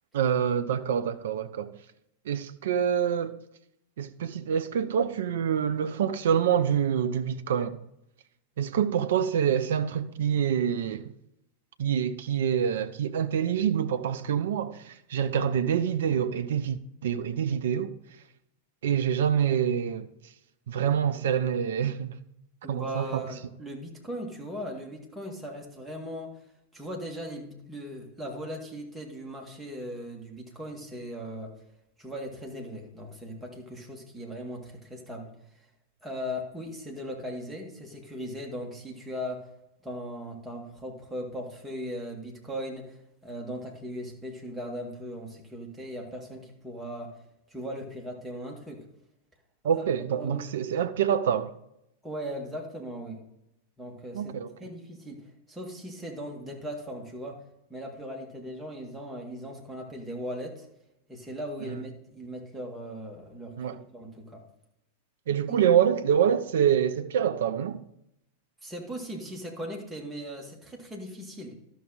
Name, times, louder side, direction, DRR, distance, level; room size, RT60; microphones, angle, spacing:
voice 1, 0.1-1.7 2.3-3.4 4.0-7.8 8.6-11.1 11.8-17.9 18.8-20.1 20.7-22.2 22.7-23.2 49.6-51.5 54.1-54.5 63.6-63.8 65.3-67.8, right 8 dB, 60° right, 0.6 m, -26 dB
voice 2, 22.6-26.4 26.7-31.6 32.0-35.3 36.0-39.5 39.8-47.1 47.5-48.9 49.8-50.5 52.0-53.2 53.8-57.4 57.7-60.7 61.1-63.6 63.9-64.4 65.5-65.7 68.6-71.5, equal, 5° right, 2.0 m, -38 dB
12.5 x 6.2 x 4.0 m
figure-of-eight pair, 90°, 0 cm